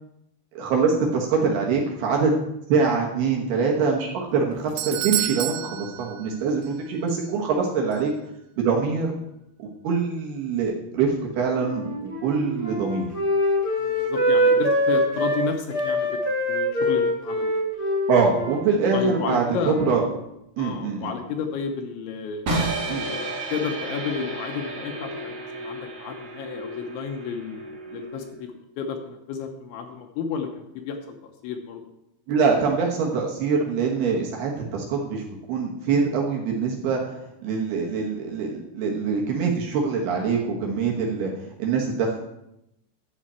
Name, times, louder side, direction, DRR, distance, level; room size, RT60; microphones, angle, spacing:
voice 1, 0.5-2.3 2.7-8.1 8.6-9.1 9.6-13.1 18.1-20.0 20.6-21.1 22.9-23.0 32.3-35.2 35.5-37.2 37.4-41.3 41.6-42.2, right 5 dB, 65° right, -1 dB, 2.9 m, -24 dB
Doorbell, 4.3-6.8 7.1-7.2 7.9-8.0, right 14 dB, 85° right, 2.5 m, -30 dB
Wind instrument woodwind instrument, 11.5-15.4 15.7-19.3 19.5-20.1, equal, 30° left, 1.7 m, -24 dB
voice 2, 13.8-16.2 16.5-17.5 18.9-19.8 20.6-22.4 22.9-23.2 23.5-28.5 28.8-31.8, left 6 dB, 80° left, 4 dB, 3.1 m, -31 dB
sound 1, 22.5-28.4, right 2 dB, 50° right, 2.4 m, -32 dB
11.5 x 7.9 x 4.4 m, 0.84 s
omnidirectional pair, 5.5 m